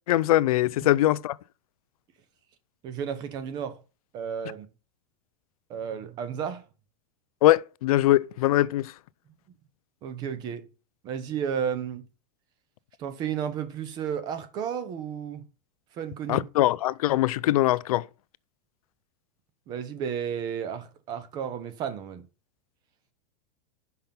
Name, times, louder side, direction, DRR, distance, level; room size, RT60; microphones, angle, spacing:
voice 1, 0.1-1.4 7.4-8.9 16.3-18.0, left 15 dB, 80° left, 0.4 m, -22 dB
voice 2, 2.8-3.8 4.1-4.7 5.7-6.6 10.0-10.6 11.0-12.0 13.0-15.4 15.9-16.5 19.7-22.2, right 8 dB, 20° right, 0.7 m, -32 dB
5.8 x 5.6 x 5.2 m
supercardioid pair, 175°, 18 cm